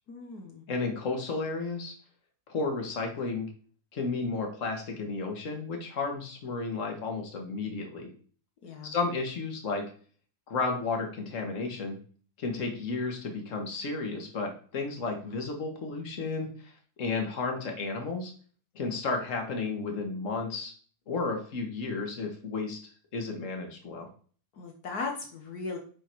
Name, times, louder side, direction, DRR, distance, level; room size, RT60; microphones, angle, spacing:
voice 1, 0.1-0.6 8.6-8.9 24.5-25.8, left 4 dB, 75° left, 2 dB, 1.6 m, -37 dB
voice 2, 0.7-1.9 2.5-3.5 3.9-8.1 8.8-9.8 10.5-12.0 12.4-16.7 17.0-18.3 18.8-20.7 21.1-22.8 23.1-24.1, left 3 dB, 50° left, 3 dB, 1.8 m, -32 dB
9.8 x 3.8 x 4.6 m, 0.44 s
omnidirectional pair, 1.7 m